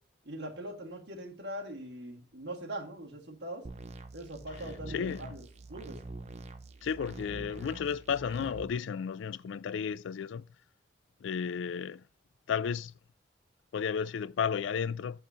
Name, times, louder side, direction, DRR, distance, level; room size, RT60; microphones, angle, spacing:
voice 1, 0.3-3.7 4.1-5.4 5.7-6.0, right 1 dB, 60° right, 1.8 m, -41 dB
sound 1, 3.6-8.6, right 3 dB, 35° right, 0.6 m, -45 dB
voice 2, 4.9-5.4 6.8-10.4 11.2-12.0 12.5-12.9 13.7-15.2, left 7 dB, 70° left, 0.3 m, -33 dB
6.9 x 4.5 x 6.2 m
head